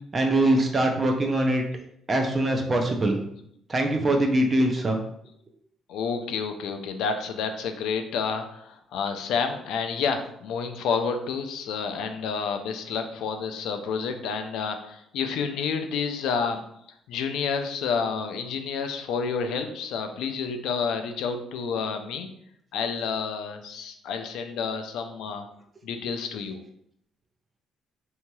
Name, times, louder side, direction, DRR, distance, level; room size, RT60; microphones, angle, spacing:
voice 1, 0.1-1.6 2.1-3.2 3.7-5.0, right 1 dB, 25° right, 3 dB, 0.4 m, -23 dB
voice 2, 5.9-16.6 17.1-22.3 22.7-25.4 25.8-26.6, left 5 dB, 80° left, 6 dB, 0.3 m, -29 dB
3.0 x 2.7 x 2.2 m, 0.71 s
cardioid pair, 140°, 0 cm